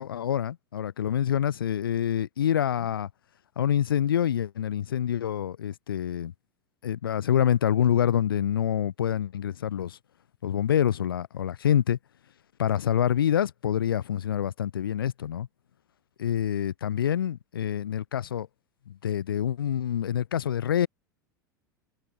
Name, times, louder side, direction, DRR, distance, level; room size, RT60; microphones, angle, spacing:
voice 1, 0.0-3.1 3.6-6.3 6.8-10.0 10.4-12.0 12.6-15.5 16.2-18.5 18.9-20.9, left 10 dB, 75° left, 6.7 m, -26 dB
hypercardioid pair, 85°, 12 cm